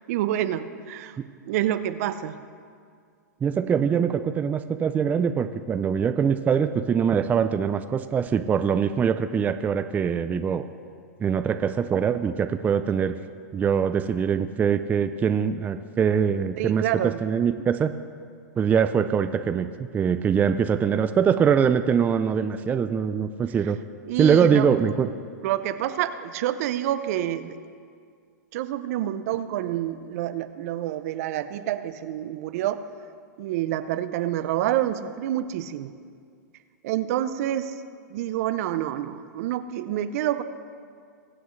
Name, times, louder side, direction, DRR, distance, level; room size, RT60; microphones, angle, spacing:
voice 1, 0.1-1.2 1.5-2.4 16.6-17.2 24.1-24.7 25.4-27.6 28.5-32.8 33.4-35.9 36.8-37.7 38.1-40.4, right 12 dB, 55° right, 12 dB, 0.6 m, -27 dB
voice 2, 3.4-10.6 11.2-13.1 13.5-17.9 18.6-23.8 24.2-25.1, right 7 dB, 15° right, 9 dB, 0.4 m, -23 dB
22.5 x 8.0 x 3.2 m, 2.2 s
hypercardioid pair, 125°, 10 cm